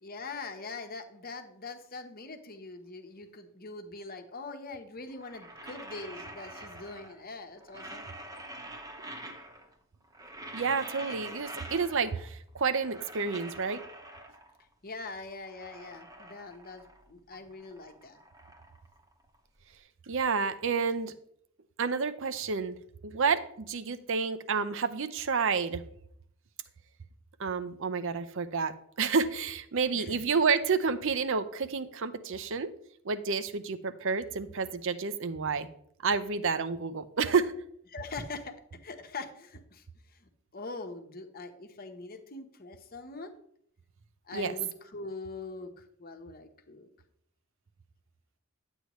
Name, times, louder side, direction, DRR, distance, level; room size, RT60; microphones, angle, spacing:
voice 1, 0.0-8.0 14.8-18.2 29.9-30.2 37.9-38.5 38.8-43.3 44.3-46.9, left 3 dB, 40° left, 6 dB, 1.0 m, -43 dB
sound 1, 5.1-7.3 7.6-9.8 10.0-12.3 12.6-14.6 15.1-17.1 17.4-19.6, right 1 dB, 15° right, 1.0 m, -46 dB
voice 2, 10.5-13.8 20.1-21.1 21.8-22.8 23.0-23.4 23.7-25.8 27.4-32.7 33.0-35.7 36.0-37.5 44.3-44.5, right 5 dB, 60° right, 12 dB, 0.6 m, -29 dB
10.5 x 8.1 x 3.1 m, 0.69 s
head